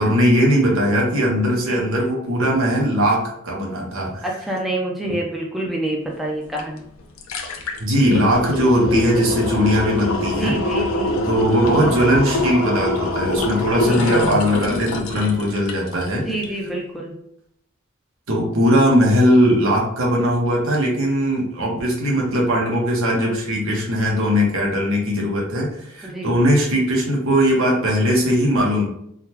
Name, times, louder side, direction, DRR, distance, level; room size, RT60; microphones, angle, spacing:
voice 1, 0.0-4.3 5.1-5.2 7.8-10.6 11.2-16.3 18.3-28.9, equal, 85° right, -2 dB, 1.0 m, -19 dB
voice 2, 4.2-6.9 10.4-11.2 13.8-14.1 16.1-17.2 26.0-26.3, right 1 dB, ahead, -2 dB, 0.4 m, -27 dB
sound 1, 6.6-6.7 7.0-16.1 16.4-16.5, left 1 dB, 85° left, 0.5 m, -24 dB
3.7 x 2.2 x 2.9 m, 0.70 s
head